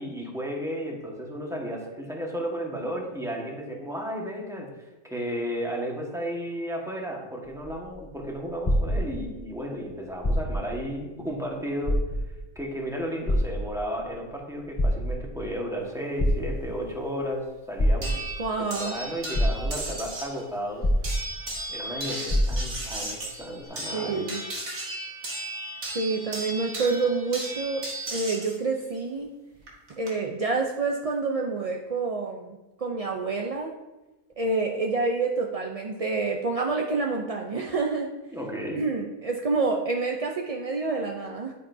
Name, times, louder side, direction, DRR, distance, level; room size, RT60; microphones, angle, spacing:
voice 1, 0.0-4.7 5.0-12.0 12.5-18.2 18.6-20.9 21.7-24.3 38.3-38.8, equal, ahead, -2 dB, 1.4 m, -33 dB
sound 1, 7.4-9.5 10.1-10.8 11.2-11.3 11.8-12.5 13.3-14.1 14.6-15.5 16.2-16.9 17.8-18.5 19.0-19.1 19.3-20.1 20.8-21.6 21.9-22.0 22.3-22.9 23.6-23.7, equal, 25° left, 0.7 m, -25 dB
sound 2, 18.0-20.4 21.0-28.6 29.7-30.1, right 1 dB, 75° right, 2.2 m, -35 dB
voice 2, 18.4-19.0 23.9-24.4 25.9-27.8 28.1-29.3 30.0-33.7 34.4-38.1 38.8-41.5, right 3 dB, 50° right, 1 dB, 0.4 m, -28 dB
10.0 x 9.2 x 2.7 m, 1.1 s
omnidirectional pair, 1.4 m